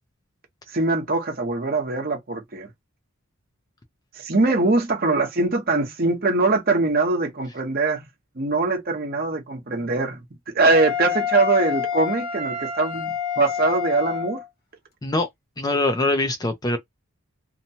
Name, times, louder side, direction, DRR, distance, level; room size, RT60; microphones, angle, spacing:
voice 1, 0.7-2.7 4.1-8.1 8.4-14.4, right 3 dB, 45° right, 0.9 m, -22 dB
Wind instrument woodwind instrument, 10.7-14.5, left 7 dB, 45° left, 0.8 m, -28 dB
voice 2, 15.6-16.8, left 2 dB, 20° left, 0.4 m, -23 dB
2.8 x 2.2 x 2.7 m
head